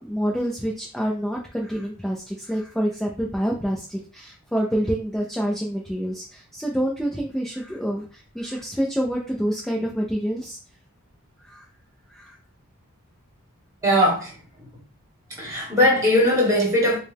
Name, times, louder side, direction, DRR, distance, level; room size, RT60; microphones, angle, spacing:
voice 1, 0.0-10.6 11.4-11.7 12.1-12.4, equal, ahead, 0.6 m, -27 dB
voice 2, 13.8-14.4 15.4-17.0, equal, 15° right, 1.8 m, -19 dB
4.8 x 2.3 x 3.4 m
head